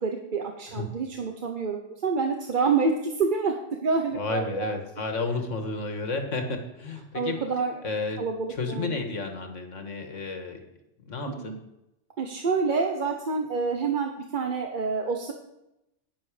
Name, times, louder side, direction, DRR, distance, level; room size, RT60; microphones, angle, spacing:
voice 1, 0.0-3.5 3.8-4.8 7.1-7.8 8.2-9.0 11.3-11.6 12.2-15.3, right 4 dB, 45° right, 4 dB, 1.0 m, -27 dB
voice 2, 4.1-7.4 7.8-8.2 8.5-10.6 11.0-11.5, left 3 dB, 85° left, 5 dB, 1.9 m, -31 dB
11.0 x 10.0 x 5.0 m, 0.88 s
omnidirectional pair, 1.3 m